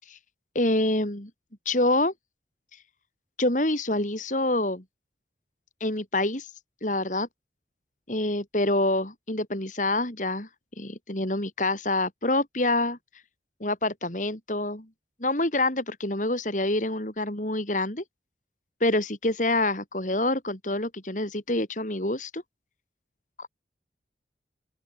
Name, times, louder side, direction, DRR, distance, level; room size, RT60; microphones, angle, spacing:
voice 1, 0.6-1.3 1.7-2.1 3.4-4.8 5.8-6.5 6.8-7.3 8.1-10.5 10.8-13.0 13.6-14.9 15.2-18.0 18.8-22.4 23.4-23.5, left 2 dB, 45° left, 3.6 m, -26 dB
open air
head